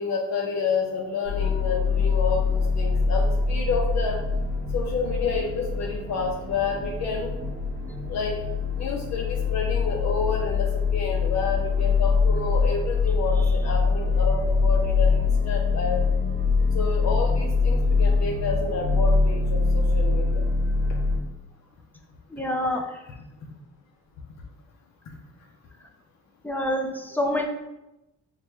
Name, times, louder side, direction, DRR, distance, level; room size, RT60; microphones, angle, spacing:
voice 1, 0.0-4.2 4.7-7.3 8.1-8.4 8.8-16.0 16.7-20.4, left 4 dB, 60° left, 0 dB, 0.6 m, -29 dB
sound 1, 1.2-21.2, left 4 dB, 60° right, 0.8 m, -24 dB
voice 2, 22.3-22.9 26.4-27.4, left 1 dB, 5° left, 2 dB, 0.5 m, -26 dB
4.7 x 2.2 x 3.0 m, 0.96 s
cardioid pair, 90°, 30 cm